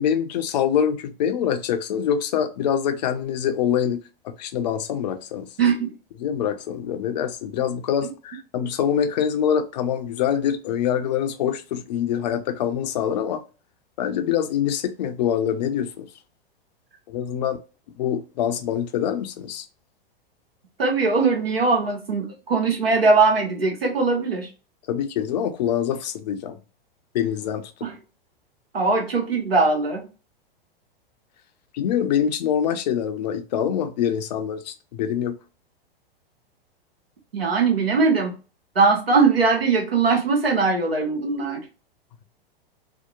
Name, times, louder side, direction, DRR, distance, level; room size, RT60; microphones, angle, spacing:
voice 1, 0.0-5.5 6.2-13.4 14.0-16.1 17.1-17.6 18.0-19.7 24.9-26.6 27.1-27.7 31.7-35.4, left 9 dB, 45° left, 0.4 m, -25 dB
voice 2, 5.6-5.9 20.8-24.5 27.8-27.9 28.7-30.1 37.3-38.3 38.7-41.6, right 4 dB, 80° right, 1.0 m, -20 dB
2.7 x 2.1 x 2.3 m
figure-of-eight pair, 100°, 30 cm